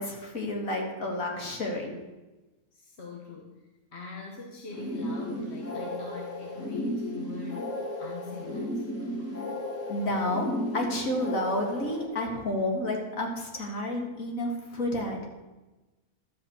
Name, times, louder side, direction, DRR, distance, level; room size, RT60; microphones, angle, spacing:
voice 1, 0.0-1.9 9.9-10.5 10.7-15.2, left 1 dB, 65° left, 1 dB, 2.3 m, -30 dB
voice 2, 2.7-3.6 3.9-9.3, left 4 dB, 50° left, 0 dB, 1.4 m, -43 dB
sound 1, 4.7-12.1, left 1 dB, 10° left, 1.9 m, -34 dB
12.0 x 5.2 x 8.1 m, 1.1 s
omnidirectional pair, 1.5 m